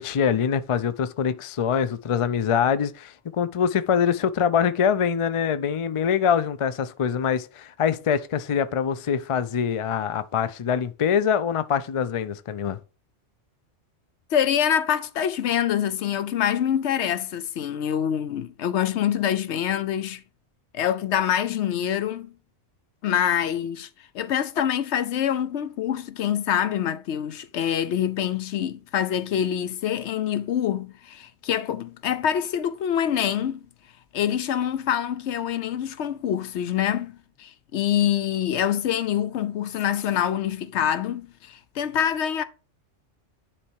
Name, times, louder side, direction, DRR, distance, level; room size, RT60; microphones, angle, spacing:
voice 1, 0.0-12.8, left 7 dB, 55° left, 0.3 m, -24 dB
voice 2, 14.3-20.2 20.7-22.3 23.0-23.9 24.1-33.7 34.1-42.4, left 9 dB, 75° left, 0.9 m, -25 dB
10.0 x 3.4 x 4.6 m
omnidirectional pair, 1.2 m